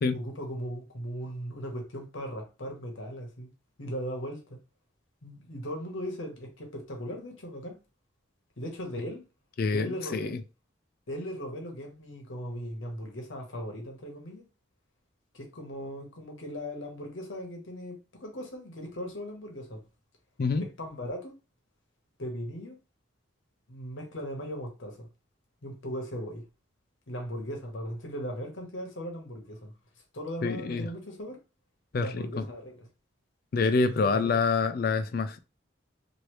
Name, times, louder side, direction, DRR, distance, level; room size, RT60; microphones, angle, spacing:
voice 1, 0.1-3.5 3.8-4.6 5.2-7.8 8.6-9.2 9.7-10.4 11.1-14.4 15.3-19.8 20.6-21.3 22.2-22.8 23.7-25.1 25.6-26.4 27.1-29.7 30.1-31.4 31.9-32.9 33.7-34.3, equal, 75° left, 1.1 m, -38 dB
voice 2, 30.4-30.9 31.9-32.4 33.5-35.4, left 4 dB, 50° left, 0.3 m, -26 dB
3.1 x 2.7 x 3.0 m
head